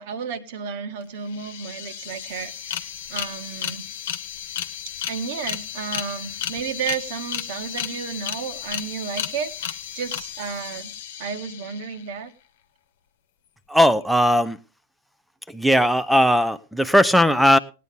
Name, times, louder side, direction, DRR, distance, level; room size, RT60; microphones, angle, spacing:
voice 1, 0.0-3.9 5.1-10.9 11.2-12.3, right 6 dB, 50° right, 8 dB, 1.6 m, -32 dB
sound 1, 1.0-1.1 1.3-12.1, left 10 dB, 55° left, 1.1 m, -33 dB
voice 2, 13.7-14.6 15.5-17.6, equal, ahead, 14 dB, 0.7 m, -18 dB
19.5 x 9.3 x 3.4 m, 0.34 s
figure-of-eight pair, 90°, 0 cm